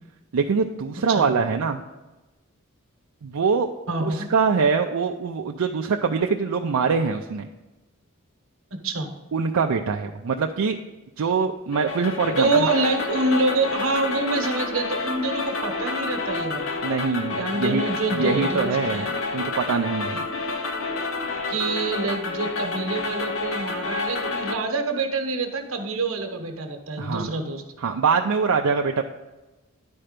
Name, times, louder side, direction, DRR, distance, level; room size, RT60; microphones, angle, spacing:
voice 1, 0.3-1.8 3.2-3.7 4.0-7.5 9.3-10.8 11.2-12.7 16.8-17.8 18.1-19.1 19.3-20.2 27.0-27.3 27.8-29.0, right 5 dB, 85° right, 3 dB, 0.5 m, -23 dB
voice 2, 3.9-4.3 8.8-9.1 12.4-16.7 17.4-19.1 21.5-27.6, right 3 dB, 70° right, 5 dB, 1.1 m, -26 dB
sound 1, 11.7-24.6, left 3 dB, 60° left, 0.8 m, -29 dB
11.0 x 4.4 x 5.1 m, 1.1 s
head